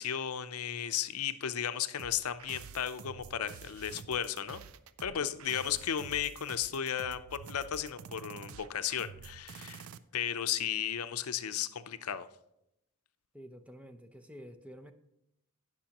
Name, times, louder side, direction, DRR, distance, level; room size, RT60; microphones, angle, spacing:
voice 1, 0.0-4.6 5.0-9.9 10.1-12.3, left 9 dB, 85° left, 0.6 m, -35 dB
sound 1, 2.0-10.0, right 6 dB, 70° right, 0.5 m, -49 dB
voice 2, 13.3-14.9, equal, 5° right, 0.6 m, -50 dB
18.5 x 6.2 x 2.9 m
head